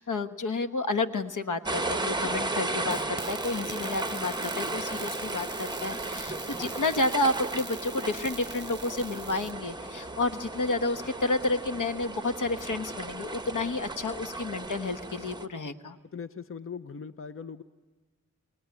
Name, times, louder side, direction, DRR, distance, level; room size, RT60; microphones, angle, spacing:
voice 1, 0.0-16.0, left 2 dB, 80° left, 8 dB, 1.2 m, -30 dB
sound 1, 1.7-15.5, right 2 dB, 15° right, 1.0 m, -35 dB
sound 2, 2.9-9.5, right 4 dB, 35° right, 0.9 m, -44 dB
voice 2, 16.1-17.6, left 6 dB, 45° left, 12 dB, 0.8 m, -40 dB
29.5 x 20.0 x 9.5 m, 1.4 s
wide cardioid pair, 70°, 31 cm